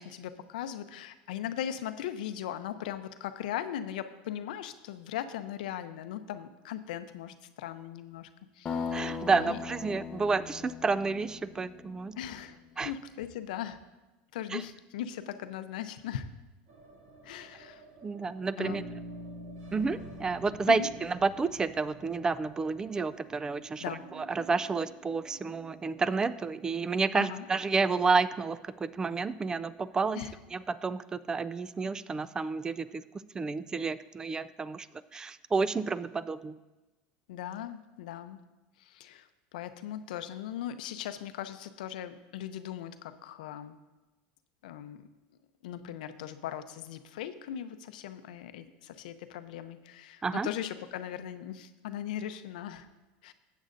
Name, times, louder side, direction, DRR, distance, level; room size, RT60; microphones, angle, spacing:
voice 1, 0.0-8.3 8.6-9.1 9.3-9.6 12.2-13.8 14.3-16.3 17.2-17.8 18.6-18.8 20.7-20.9 23.8-24.0 27.1-27.5 30.1-30.4 37.3-38.4 38.8-39.3 39.5-43.8 44.6-45.0 45.6-52.9 53.2-53.3, left 10 dB, 90° left, 10 dB, 0.6 m, -39 dB
sound 1, 8.7-12.4, left 5 dB, 25° left, 0.7 m, -39 dB
voice 2, 8.9-12.2 12.8-12.9 14.5-14.6 18.0-18.8 19.7-23.8 24.1-30.2 30.5-33.0 33.3-34.9 35.1-36.6 50.2-50.5, right 4 dB, 15° right, 15 dB, 0.3 m, -30 dB
sound 2, 16.7-32.8 33.0-33.1 33.4-34.1, right 4 dB, 65° right, 2.2 m, -54 dB
Bass guitar, 18.6-22.7, equal, 80° right, 1.9 m, -46 dB
14.0 x 8.3 x 2.6 m, 1.1 s
supercardioid pair, 125°, 4 cm